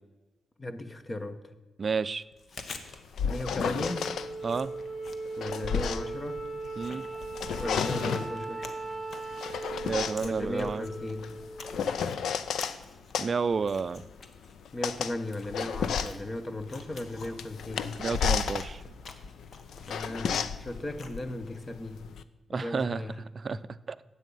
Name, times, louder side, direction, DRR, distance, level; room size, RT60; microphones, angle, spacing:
voice 1, 0.6-1.5 3.2-4.2 5.4-6.4 7.6-8.7 10.2-11.3 14.7-17.9 19.9-22.0 22.5-23.2 23.5-23.7, left 1 dB, 25° left, 11 dB, 1.0 m, -36 dB
voice 2, 1.8-2.2 4.4-4.7 6.8-7.1 9.8-10.8 13.2-14.0 18.0-18.8 22.5-23.0 23.3-23.6 23.9-24.0, right 5 dB, 45° right, 17 dB, 0.4 m, -30 dB
Chewing mastication, 2.2-21.7, left 4 dB, 60° left, 1.2 m, -50 dB
sound 1, 2.9-4.3 5.1-6.9 7.2-8.4 9.1-12.8 13.1-22.2, left 7 dB, 80° left, 0.6 m, -33 dB
Wind instrument woodwind instrument, 3.7-12.3, right 3 dB, 15° right, 1.4 m, -38 dB
12.5 x 8.4 x 5.5 m, 1.2 s
cardioid pair, 85°, 0 cm